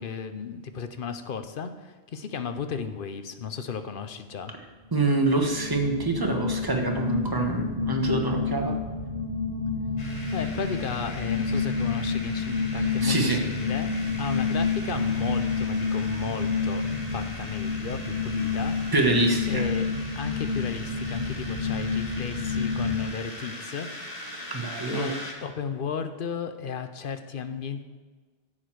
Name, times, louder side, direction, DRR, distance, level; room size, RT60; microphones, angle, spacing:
voice 1, 0.0-4.5 10.3-13.9 14.2-16.8 17.1-18.8 19.5-19.9 20.2-23.9 24.9-25.1 25.4-27.8, left 6 dB, 60° left, 9 dB, 0.8 m, -34 dB
sound 1, 4.8-23.1, left 4 dB, 85° left, 2.2 m, -29 dB
voice 2, 4.9-8.8 13.0-13.4 18.9-19.7 24.5-25.1, right 2 dB, 20° right, 2 dB, 1.2 m, -25 dB
sound 2, 10.0-25.3, left 1 dB, 40° left, 1.5 m, -41 dB
10.5 x 7.5 x 4.6 m, 1.4 s
omnidirectional pair, 1.1 m